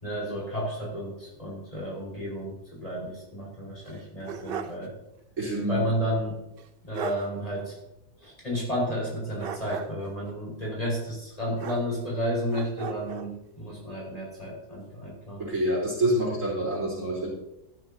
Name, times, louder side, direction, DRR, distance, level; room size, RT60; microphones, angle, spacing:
voice 1, 0.0-4.9 5.7-6.4 6.8-7.7 8.2-15.5, equal, 20° left, -4 dB, 4.8 m, -32 dB
sound 1, 3.8-4.9 5.2-5.3 6.6-6.7 6.9-7.3 9.4-10.1 11.6-12.2 12.5-13.3, right 7 dB, 90° right, 0.5 m, -37 dB
voice 2, 5.4-5.8 15.4-17.3, right 1 dB, 50° right, -5 dB, 4.1 m, -27 dB
13.5 x 13.0 x 2.8 m, 0.84 s
omnidirectional pair, 1.8 m